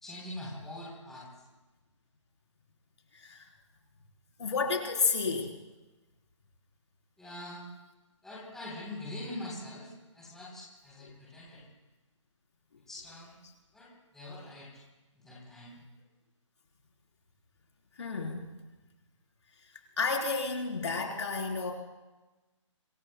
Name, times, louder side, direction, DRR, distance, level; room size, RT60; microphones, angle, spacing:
voice 1, 0.0-1.3 7.2-7.6 8.2-11.6 12.9-13.4 13.7-14.8 15.1-15.8, left 1 dB, 5° left, -5 dB, 3.7 m, -43 dB
voice 2, 4.4-5.5 18.0-18.5 20.0-21.7, left 4 dB, 60° left, 0 dB, 4.0 m, -31 dB
26.0 x 23.5 x 2.3 m, 1.1 s
hypercardioid pair, 165°, 16 cm